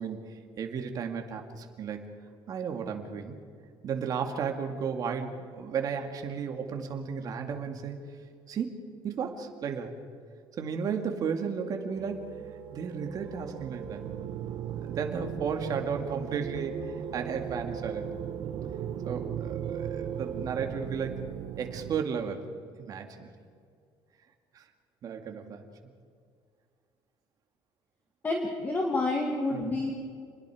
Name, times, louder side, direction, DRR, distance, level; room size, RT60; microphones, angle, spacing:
voice 1, 0.0-2.1 2.5-3.4 3.8-8.0 8.5-9.9 10.6-14.0 14.8-18.2 19.1-21.2 21.6-22.4 22.8-23.3 24.5-24.6 25.0-25.6 29.5-29.9, right 6 dB, 45° right, 4 dB, 2.3 m, -34 dB
sound 1, 11.9-22.0, right 9 dB, 60° right, 1.3 m, -37 dB
voice 2, 28.2-29.9, left 2 dB, 20° left, 1 dB, 2.3 m, -29 dB
28.5 x 21.0 x 5.0 m, 2.2 s
cardioid pair, 155°, 9 cm